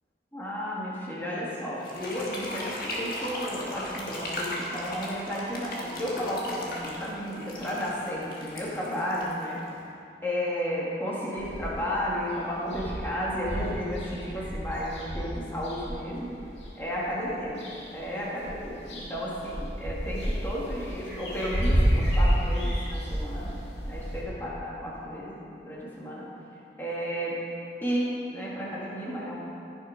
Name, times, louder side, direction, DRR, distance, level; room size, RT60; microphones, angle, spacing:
voice 1, 0.3-9.6 10.2-16.4 16.7-23.6 23.9-26.3 26.8-27.4 27.8-29.4, equal, 10° left, -6 dB, 2.1 m, -33 dB
sound 1, 1.8-9.8, left 1 dB, 55° left, 1.9 m, -36 dB
sound 2, 11.4-12.0 12.3-12.4 12.6-16.7 17.2-18.1 18.4-24.2, equal, 85° left, 2.6 m, -30 dB
15.0 x 6.8 x 5.1 m, 2.6 s
head